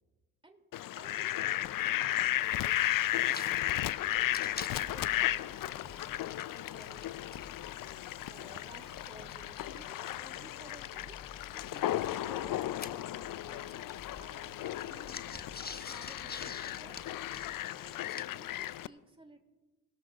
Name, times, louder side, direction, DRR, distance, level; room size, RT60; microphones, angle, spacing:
Fowl, 0.7-18.9, left 14 dB, 50° left, 0.7 m, -35 dB
voice 1, 0.9-6.2 6.5-7.2 8.3-15.5 15.7-17.3 17.8-19.4, right 2 dB, 10° right, 4 dB, 3.0 m, -56 dB
sound 1, 3.3-3.5 3.8-3.9 4.2-7.1 7.3-11.0 11.7-13.4 13.6-18.5, left 4 dB, 20° left, 1.4 m, -48 dB
sound 2, 3.9-17.4, equal, 70° left, 3.8 m, -57 dB
26.5 x 18.0 x 2.5 m, 1.2 s
hypercardioid pair, 50°, 44 cm